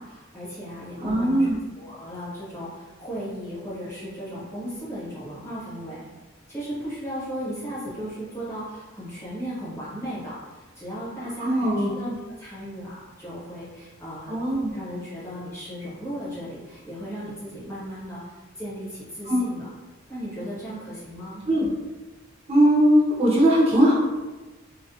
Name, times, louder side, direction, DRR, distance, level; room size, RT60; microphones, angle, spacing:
voice 1, 0.0-1.5 1.7-6.0 6.5-14.3 14.7-19.7 20.1-21.4, equal, 15° left, -9 dB, 1.0 m, -36 dB
voice 2, 1.0-1.6 11.4-11.9 14.3-14.7 19.3-19.4 21.4-21.7 22.5-24.0, equal, 30° right, -5 dB, 0.6 m, -20 dB
2.3 x 2.1 x 2.6 m, 1.2 s
head